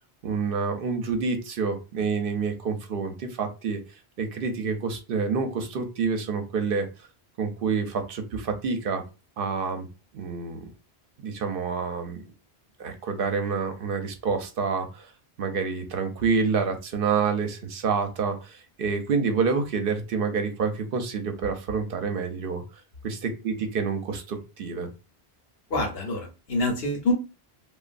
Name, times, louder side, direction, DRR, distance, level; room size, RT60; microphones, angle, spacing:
voice 1, 0.2-3.8 4.2-6.9 7.4-9.0 9.4-9.9 10.1-10.7 11.2-12.2 12.8-15.1 15.4-22.6 23.0-24.9, right 5 dB, 60° right, 6 dB, 0.7 m, -28 dB
voice 2, 25.7-27.1, left 2 dB, 65° left, 2 dB, 0.9 m, -26 dB
2.9 x 2.3 x 2.5 m, 0.30 s
omnidirectional pair, 1.1 m